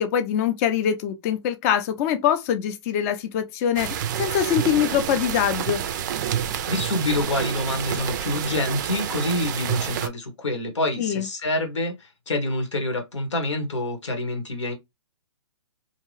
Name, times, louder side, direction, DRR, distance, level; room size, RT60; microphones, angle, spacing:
voice 1, 0.0-5.8 11.0-11.3, left 9 dB, 30° left, 0.5 m, -23 dB
sound 1, 3.8-10.1, right 10 dB, 40° right, 0.4 m, -28 dB
voice 2, 6.7-14.7, left 1 dB, 90° left, 1.3 m, -27 dB
2.8 x 2.2 x 3.1 m
hypercardioid pair, 140°, 15 cm